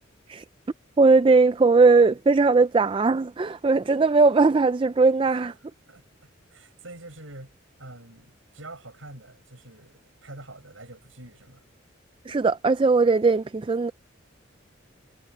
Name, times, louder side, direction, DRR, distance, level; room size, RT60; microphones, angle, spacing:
voice 1, 1.0-5.5 12.3-13.9, right 3 dB, 25° right, 0.3 m, -19 dB
voice 2, 5.2-5.6 5.9-7.5 7.8-11.6, right 2 dB, 75° right, 7.0 m, -45 dB
head